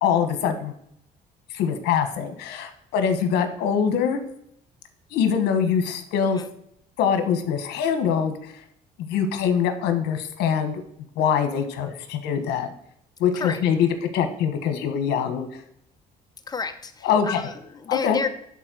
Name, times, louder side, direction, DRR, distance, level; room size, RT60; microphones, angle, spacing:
voice 1, 0.0-0.7 1.5-4.2 5.1-6.4 7.0-8.5 9.0-10.8 11.2-12.7 13.2-13.9 14.1-15.6 17.0-17.4 17.9-18.2, left 7 dB, 85° left, 7 dB, 1.3 m, -23 dB
voice 2, 16.5-18.3, left 5 dB, 25° left, 8 dB, 1.0 m, -30 dB
11.0 x 4.1 x 6.2 m, 0.72 s
cardioid pair, 110°, 17 cm